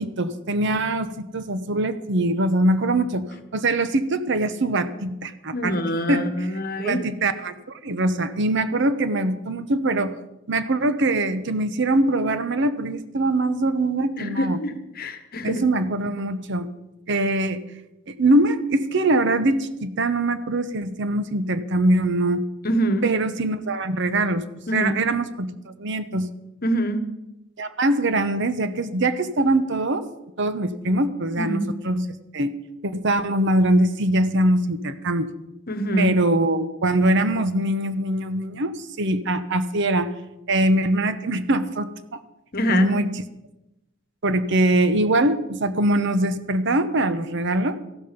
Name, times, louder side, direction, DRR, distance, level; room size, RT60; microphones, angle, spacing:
voice 1, 0.0-3.3 3.5-5.8 6.1-6.3 6.8-10.2 10.5-14.6 15.4-16.7 17.1-17.6 18.1-22.5 23.0-24.4 24.7-25.5 25.8-26.3 27.6-30.0 30.4-32.5 32.8-35.3 36.0-40.1 40.5-42.2 42.7-43.1 44.2-47.8, right 1 dB, 60° right, 11 dB, 0.9 m, -22 dB
voice 2, 5.5-7.0 14.2-15.6 22.6-23.1 24.7-24.9 26.6-27.0 31.4-31.7 35.7-36.1 42.5-42.9, equal, 45° left, 9 dB, 1.3 m, -25 dB
14.5 x 12.5 x 5.2 m, 0.92 s
head